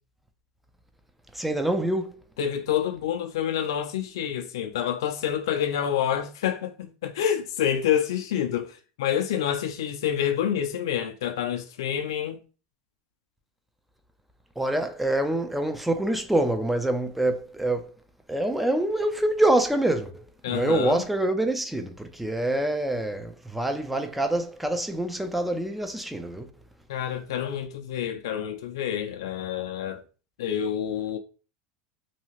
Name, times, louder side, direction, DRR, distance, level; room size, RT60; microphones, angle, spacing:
voice 1, 1.3-2.2 14.6-17.9 18.3-26.5, right 1 dB, 5° right, 0.4 m, -26 dB
voice 2, 2.4-12.4 20.4-21.0 26.9-30.0 30.4-31.2, left 9 dB, 80° left, 0.4 m, -28 dB
2.7 x 2.3 x 3.0 m
supercardioid pair, 120°, 2 cm